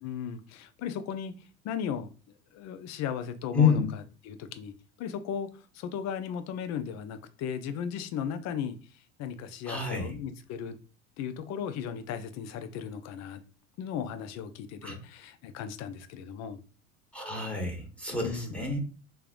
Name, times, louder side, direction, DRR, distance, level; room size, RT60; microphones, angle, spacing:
voice 1, 0.0-1.3 1.6-2.1 2.5-4.7 5.0-5.5 5.7-8.8 9.2-10.7 11.2-13.4 13.8-16.6 18.1-18.6, left 8 dB, 45° left, 0.6 m, -36 dB
voice 2, 3.5-3.9 9.7-10.1 14.8-15.0 17.1-18.8, left 5 dB, 5° left, 1.1 m, -28 dB
3.5 x 3.3 x 2.5 m
hypercardioid pair, 75°, 38 cm